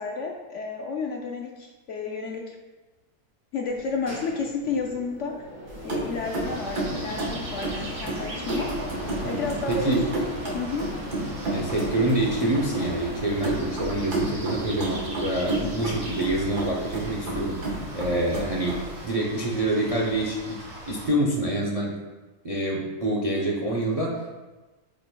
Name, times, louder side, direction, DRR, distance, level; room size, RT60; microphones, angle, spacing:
voice 1, 0.0-2.6 3.5-5.5 5.8-8.7 9.2-10.3 10.5-10.8, left 4 dB, 65° left, 1 dB, 0.8 m, -31 dB
sound 1, 3.7-15.3, equal, 10° right, 1.5 m, -40 dB
sound 2, 5.7-19.1, right 2 dB, 80° right, 1.9 m, -32 dB
sound 3, 6.2-21.1, right 1 dB, 55° right, 1.9 m, -41 dB
voice 2, 9.7-10.1 11.5-22.0 22.4-24.3, right 1 dB, 35° right, -2 dB, 0.5 m, -26 dB
8.6 x 5.1 x 2.2 m, 1.2 s
omnidirectional pair, 1.6 m